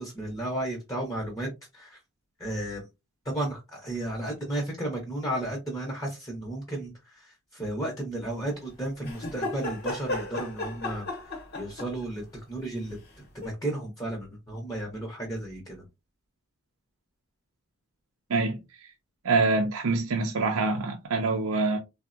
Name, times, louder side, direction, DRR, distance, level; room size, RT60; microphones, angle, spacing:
voice 1, 0.0-2.0 2.4-2.9 3.2-15.9, right 1 dB, 15° left, 0.7 m, -34 dB
sound 1, 9.0-12.1 13.4-13.5, left 2 dB, 45° left, 0.9 m, -34 dB
voice 2, 19.2-21.8, right 3 dB, 80° right, 0.5 m, -25 dB
3.5 x 2.0 x 2.4 m
head